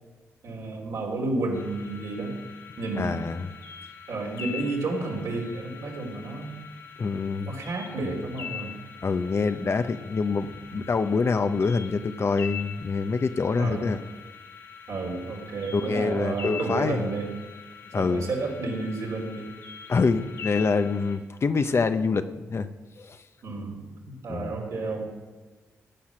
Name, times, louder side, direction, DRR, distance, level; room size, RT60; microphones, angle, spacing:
voice 1, 0.4-2.4 2.8-3.3 4.1-6.6 7.5-8.8 10.7-10.8 13.6-13.9 14.9-17.3 18.0-19.5 23.4-25.1, right 3 dB, 75° right, -1 dB, 3.9 m, -31 dB
sound 1, 1.5-21.2, left 7 dB, 85° left, 1.9 m, -43 dB
voice 2, 3.0-3.5 7.0-7.5 9.0-14.0 15.7-17.0 17.9-18.3 19.9-22.7 23.0-23.2 24.3-24.5, left 4 dB, 50° left, 9 dB, 1.0 m, -26 dB
17.0 x 5.8 x 9.9 m, 1.3 s
supercardioid pair, 50°, 6 cm